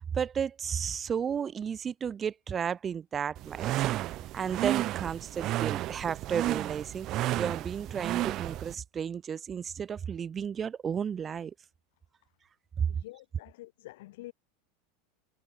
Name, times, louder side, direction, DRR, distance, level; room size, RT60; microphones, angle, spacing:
voice 1, 0.1-3.9 4.3-7.1 7.4-11.5 12.8-12.9, right 7 dB, 25° right, 2.2 m, -33 dB
sound 1, 3.4-8.7, right 15 dB, 45° right, 1.8 m, -32 dB
voice 2, 12.9-14.3, left 18 dB, 70° left, 6.7 m, -47 dB
hypercardioid pair, 100°, 0 cm